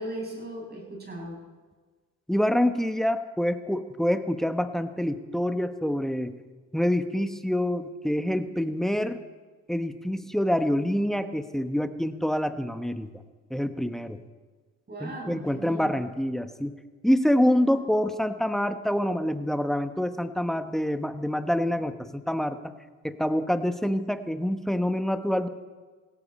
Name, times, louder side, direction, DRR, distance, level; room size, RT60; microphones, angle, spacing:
voice 1, 0.0-1.4 14.9-16.0, right 1 dB, 35° right, -1 dB, 6.8 m, -37 dB
voice 2, 2.3-6.3 6.7-9.2 9.7-13.2 13.5-14.2 15.0-16.7 17.0-22.7 23.0-25.5, equal, ahead, 8 dB, 1.1 m, -26 dB
19.0 x 17.0 x 4.3 m, 1.4 s
cardioid pair, 90°, 30 cm